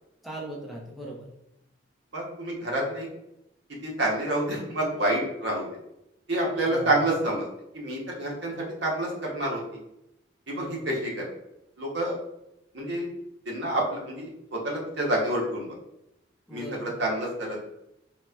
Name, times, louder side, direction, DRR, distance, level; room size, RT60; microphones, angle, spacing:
voice 1, 0.2-1.3 6.7-7.0 10.5-10.9 16.5-17.1, right 1 dB, ahead, -3 dB, 0.5 m, -39 dB
voice 2, 2.1-3.1 3.8-5.7 6.3-7.5 7.7-9.6 10.5-11.3 11.8-12.2 12.7-13.1 13.5-15.8 16.5-17.6, right 1 dB, 60° right, -3 dB, 0.9 m, -28 dB
4.1 x 2.1 x 2.3 m, 0.86 s
head